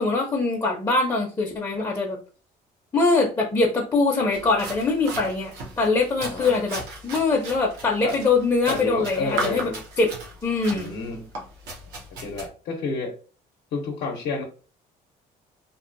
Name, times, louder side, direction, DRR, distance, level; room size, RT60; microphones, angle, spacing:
voice 1, 0.0-2.2 2.9-9.7 10.0-10.1 10.4-10.9, left 3 dB, 20° left, -1 dB, 0.5 m, -23 dB
sound 1, 4.3-12.5, right 3 dB, 85° right, 0.7 m, -37 dB
voice 2, 6.2-6.7 8.0-8.2 8.7-9.8 10.7-11.3 12.2-13.2 13.7-14.4, left 4 dB, 70° left, 0 dB, 0.6 m, -30 dB
2.6 x 2.3 x 2.5 m, 0.37 s
cardioid pair, 110°, 17 cm